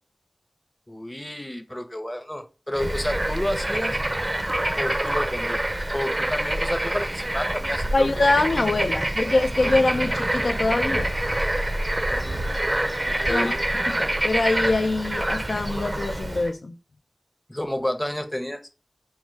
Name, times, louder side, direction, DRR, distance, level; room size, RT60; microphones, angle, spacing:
voice 1, 0.9-4.0 4.8-5.6 5.9-8.4 9.2-9.3 12.1-13.6 17.5-18.7, left 1 dB, 15° left, 0.6 m, -31 dB
Bird / Frog, 2.7-16.5, right 1 dB, 35° right, 0.4 m, -26 dB
voice 2, 7.9-11.1 13.3-13.6 13.9-16.7, left 2 dB, 80° left, 0.3 m, -23 dB
4.5 x 2.1 x 3.1 m
wide cardioid pair, 45°, 0 cm